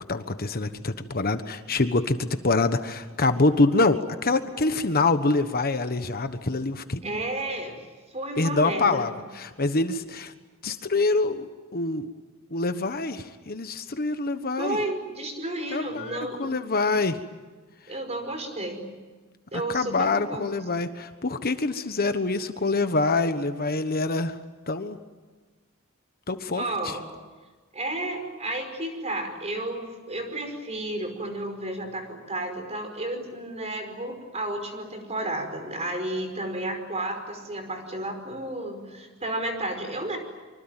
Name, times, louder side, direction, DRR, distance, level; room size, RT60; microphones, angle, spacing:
voice 1, 0.1-7.2 8.4-10.3 10.6-12.1 12.5-14.8 15.7-17.2 19.7-24.4 24.7-25.0 26.3-27.0, left 3 dB, 45° left, 9 dB, 1.3 m, -25 dB
voice 2, 7.0-7.8 8.1-9.0 14.6-16.5 17.9-18.9 19.5-20.6 26.6-27.0 27.7-40.2, right 1 dB, 30° right, 6 dB, 5.3 m, -32 dB
25.5 x 25.0 x 9.1 m, 1.3 s
head